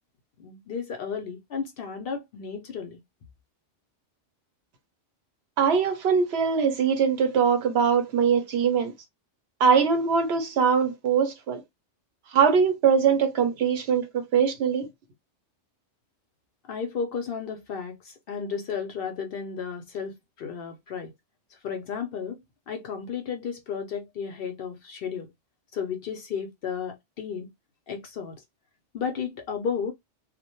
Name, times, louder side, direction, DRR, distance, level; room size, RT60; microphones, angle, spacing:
voice 1, 0.4-3.0 16.7-21.1 21.6-22.4 22.7-25.3 25.7-27.5 27.9-28.4 28.9-29.9, left 6 dB, 65° left, 0.7 m, -33 dB
voice 2, 5.6-8.9 9.6-11.6 12.3-14.9, right 6 dB, 65° right, 0.8 m, -22 dB
2.1 x 2.1 x 2.8 m
omnidirectional pair, 1.2 m